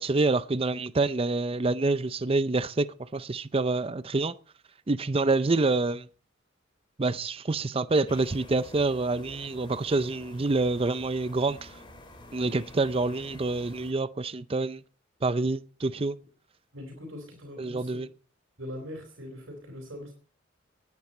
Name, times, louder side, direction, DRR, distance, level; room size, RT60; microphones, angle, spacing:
voice 1, 0.0-4.3 4.9-6.1 7.0-11.8 12.3-14.8 15.2-16.2 17.6-18.1, right 3 dB, 30° right, 0.5 m, -27 dB
sound 1, 8.1-13.9, left 1 dB, 25° left, 3.2 m, -49 dB
voice 2, 16.7-18.0 18.6-20.1, left 1 dB, 90° right, 4.2 m, -41 dB
19.5 x 9.6 x 4.3 m
head